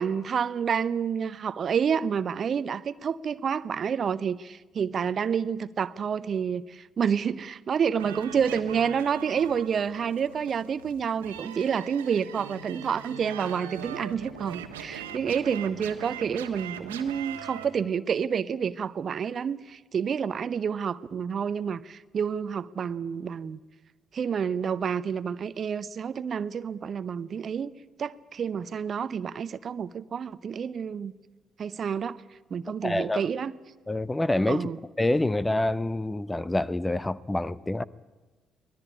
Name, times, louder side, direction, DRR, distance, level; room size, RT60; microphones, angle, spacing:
voice 1, 0.0-23.6 24.1-27.7 28.0-31.1 31.6-32.2 32.5-33.5 34.5-34.8, right 7 dB, 50° right, 0.7 m, -29 dB
sound 1, 8.0-17.6, right 8 dB, 80° right, 1.4 m, -41 dB
voice 2, 32.8-33.2 33.9-34.7 35.0-37.8, left 1 dB, 15° left, 0.8 m, -26 dB
24.5 x 18.0 x 10.0 m
figure-of-eight pair, 45°, 0 cm